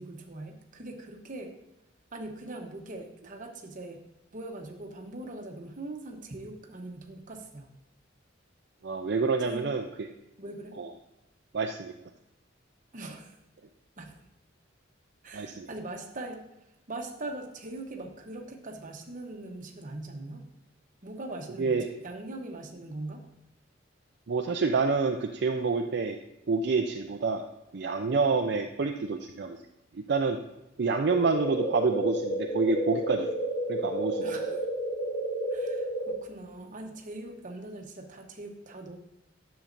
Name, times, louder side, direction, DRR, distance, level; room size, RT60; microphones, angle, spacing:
voice 1, 0.0-1.6 2.1-4.0 4.3-7.7 9.5-9.7 10.4-10.8 12.9-13.4 14.0-14.2 15.2-16.4 16.9-20.4 21.0-23.2 34.2-34.7 35.5-39.0, right 2 dB, 40° right, 3 dB, 1.0 m, -41 dB
voice 2, 8.8-9.8 10.8-10.9 11.5-11.9 15.3-15.7 21.6-21.9 24.3-26.2 26.5-27.4 27.7-29.6 29.9-30.4 30.8-33.3 33.7-34.3, right 4 dB, 60° right, 3 dB, 0.5 m, -27 dB
sound 1, 31.1-36.1, right 1 dB, 50° left, 2.7 m, -31 dB
10.0 x 7.0 x 2.6 m, 0.90 s
head